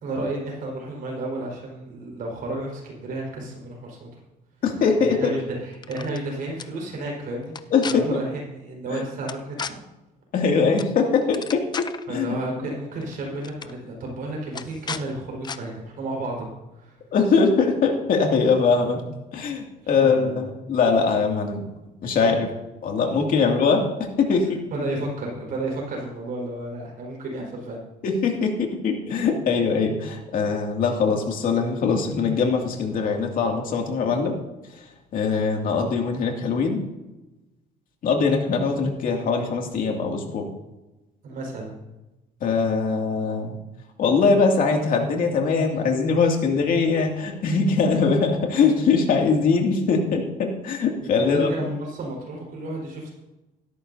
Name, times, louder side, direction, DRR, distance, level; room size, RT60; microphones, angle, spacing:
voice 1, 0.0-4.1 5.0-9.8 12.1-17.0 19.8-20.4 23.4-23.5 24.7-27.8 35.8-35.9 41.2-41.7 51.0-53.1, right 2 dB, 60° right, -1 dB, 4.9 m, -32 dB
voice 2, 4.6-5.4 7.7-8.2 8.9-9.0 10.3-12.4 17.1-19.0 19.3-21.6 22.0-22.5 22.8-24.6 28.0-34.4 34.7-36.8 38.0-40.5 42.4-43.6 44.0-51.7, left 5 dB, 60° left, 1 dB, 2.5 m, -22 dB
sound 1, 5.7-6.2 6.6-6.7 7.5-7.9 9.3-9.7 10.8-10.9 11.2-12.0 13.0-13.1 13.4-13.7 14.5-15.0 15.4-15.6, left 6 dB, 25° left, 0.6 m, -34 dB
16.5 x 13.0 x 2.8 m, 1.0 s
cardioid pair, 135°, 17 cm